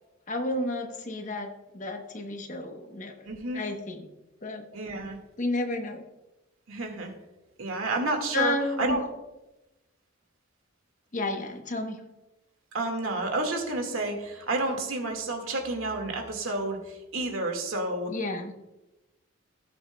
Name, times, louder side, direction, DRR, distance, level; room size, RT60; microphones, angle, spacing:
voice 1, 0.3-3.3 3.5-4.1 4.4-4.7 5.4-6.0 8.3-9.0 11.1-12.0 18.1-18.5, left 2 dB, 40° left, 5 dB, 1.0 m, -31 dB
voice 2, 3.2-3.6 4.7-5.2 6.7-7.1 7.6-9.0 12.7-18.1, right 2 dB, 90° right, 3 dB, 1.9 m, -30 dB
17.0 x 7.1 x 2.3 m, 1.0 s
head